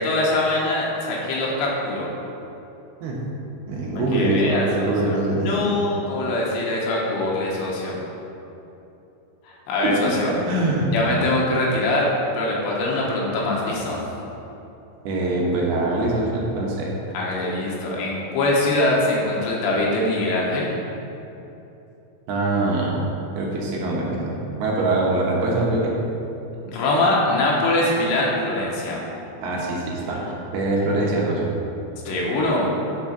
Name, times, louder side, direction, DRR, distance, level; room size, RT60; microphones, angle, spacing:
voice 1, 0.0-2.1 4.1-8.0 9.7-10.3 10.9-14.0 17.1-20.7 26.6-29.0 32.1-32.7, left 2 dB, 80° left, -4 dB, 3.4 m, -23 dB
voice 2, 3.7-5.7 9.8-10.9 15.0-16.9 22.3-23.0 23.4-25.9 29.4-30.2 30.5-31.5, right 2 dB, 75° right, -3 dB, 2.8 m, -23 dB
9.0 x 4.0 x 5.7 m, 2.9 s
omnidirectional pair, 5.1 m